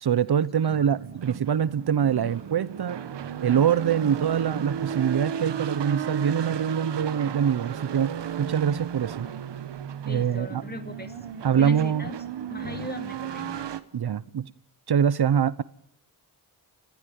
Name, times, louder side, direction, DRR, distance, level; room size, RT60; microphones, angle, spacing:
voice 1, 0.0-3.0 3.4-9.3 10.0-10.6 11.4-12.1 13.9-14.5 14.9-15.6, right 8 dB, 65° right, 0.9 m, -24 dB
sound 1, 0.7-13.8, right 8 dB, 85° right, 1.3 m, -34 dB
voice 2, 10.1-11.2 11.6-12.2 12.5-13.8, left 2 dB, 25° left, 2.6 m, -38 dB
30.0 x 15.0 x 9.5 m
cardioid pair, 80°, 41 cm